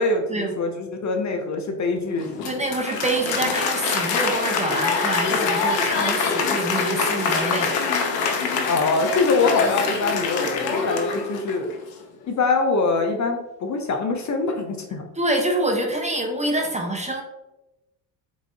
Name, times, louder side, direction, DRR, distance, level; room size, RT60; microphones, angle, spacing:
voice 1, 0.0-2.3 8.7-11.7 12.2-15.0, left 3 dB, 35° left, 4 dB, 0.9 m, -24 dB
Applause, 2.2-11.7, left 5 dB, 85° left, 0.8 m, -24 dB
voice 2, 2.4-7.7 15.2-17.2, right 1 dB, 15° right, 2 dB, 0.9 m, -26 dB
4.7 x 4.0 x 2.7 m, 0.97 s
hypercardioid pair, 60°, 47 cm